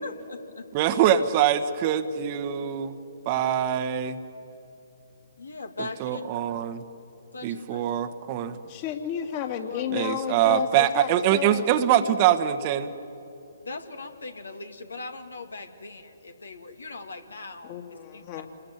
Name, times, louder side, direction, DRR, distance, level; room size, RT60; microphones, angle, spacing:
voice 1, 0.0-0.7 5.4-6.2 7.3-8.0 9.6-9.9 13.6-18.2, left 3 dB, 75° left, 6 dB, 2.3 m, -40 dB
voice 2, 0.7-2.9 3.2-4.2 6.0-6.8 7.4-8.6 9.9-12.9, right 10 dB, 30° right, 9 dB, 1.2 m, -23 dB
voice 3, 8.6-11.6 17.6-18.5, left 9 dB, 35° left, 5 dB, 2.4 m, -32 dB
28.0 x 21.0 x 9.5 m, 2.8 s
figure-of-eight pair, 130°, 0 cm